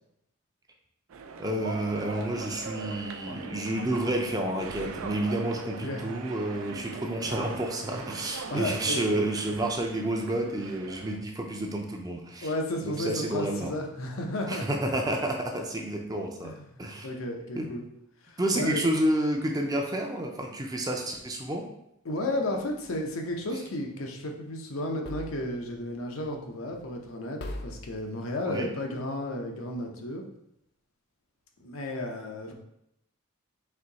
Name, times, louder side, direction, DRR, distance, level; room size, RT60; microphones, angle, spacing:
sound 1, 1.1-11.2, right 4 dB, 85° right, 0.4 m, -41 dB
voice 1, 1.4-12.5 12.8-13.7 14.5-16.5 16.8-17.1 17.5-17.7 18.4-21.7 28.5-28.7, right 1 dB, 20° right, 2 dB, 0.5 m, -30 dB
voice 2, 8.5-9.0 12.4-14.7 16.4-17.8 18.2-18.9 22.0-30.2 31.6-32.5, left 1 dB, 85° left, 2 dB, 0.7 m, -33 dB
sound 2, 22.5-23.3 25.0-25.8 26.2-26.4 26.7-27.1 27.4-28.0, left 1 dB, 50° left, 0.4 m, -41 dB
4.3 x 2.7 x 4.0 m, 0.79 s
head